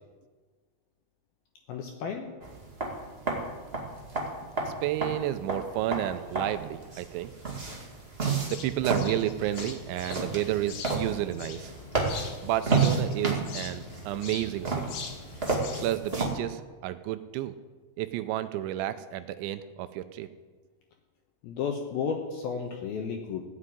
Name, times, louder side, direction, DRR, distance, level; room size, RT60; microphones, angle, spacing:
voice 1, 1.7-2.3 21.4-23.4, left 6 dB, 75° left, 3 dB, 2.3 m, -32 dB
sound 1, 2.4-16.3, right 4 dB, 60° right, 0.6 m, -31 dB
voice 2, 4.7-7.3 8.5-11.7 12.4-15.0 15.8-17.5 18.0-20.3, right 13 dB, 80° right, 11 dB, 2.8 m, -31 dB
sound 2, 8.5-15.9, left 4 dB, 60° left, 2.3 m, -42 dB
16.0 x 7.5 x 9.8 m, 1.4 s
omnidirectional pair, 5.5 m